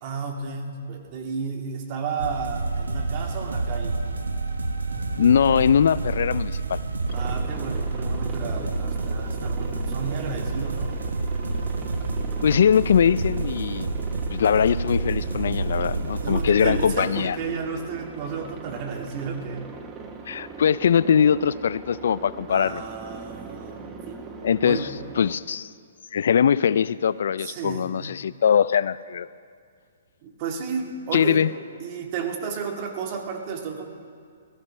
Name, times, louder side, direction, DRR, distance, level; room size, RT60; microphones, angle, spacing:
voice 1, 0.0-4.0 7.1-10.9 16.2-19.6 22.5-24.3 24.6-24.9 27.4-28.0 30.2-31.4 31.8-33.9, right 5 dB, 40° right, 3 dB, 1.9 m, -32 dB
sound 1, 2.2-17.1, right 3 dB, 90° right, 1.5 m, -28 dB
voice 2, 5.2-6.8 12.4-13.9 14.3-17.4 20.3-22.8 24.4-24.9 25.2-25.7 26.1-29.3 31.1-31.5, left 7 dB, 65° left, 18 dB, 0.3 m, -21 dB
Aircraft, 7.1-25.3, right 4 dB, 20° right, 1.2 m, -41 dB
17.5 x 14.0 x 5.5 m, 2.2 s
hypercardioid pair, 135°, 0 cm